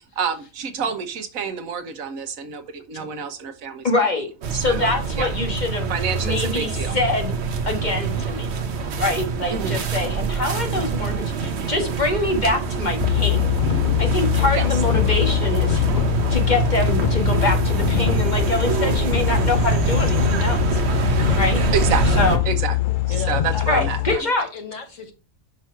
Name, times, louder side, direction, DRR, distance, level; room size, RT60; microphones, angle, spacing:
voice 1, 0.2-3.9 4.5-4.9 5.2-5.3 5.9-6.9 9.5-9.8 11.4-11.7 14.5-14.7 21.7-22.7 23.3-24.3, right 6 dB, 75° right, 9 dB, 1.4 m, -28 dB
voice 2, 3.8-4.3 4.5-5.9 6.2-7.3 7.7-8.5 9.0-13.6 14.0-15.8 16.3-20.8 21.4-21.6 22.2-22.4 23.7-24.4, left 2 dB, 35° left, 3 dB, 1.6 m, -24 dB
sound 1, 4.4-22.4, right 5 dB, 55° right, 1.1 m, -25 dB
sound 2, 13.0-24.2, left 14 dB, 90° left, 0.4 m, -22 dB
voice 3, 23.1-23.8 24.1-25.1, left 3 dB, 65° left, 5 dB, 1.8 m, -35 dB
5.9 x 5.5 x 4.5 m, 0.31 s
omnidirectional pair, 1.4 m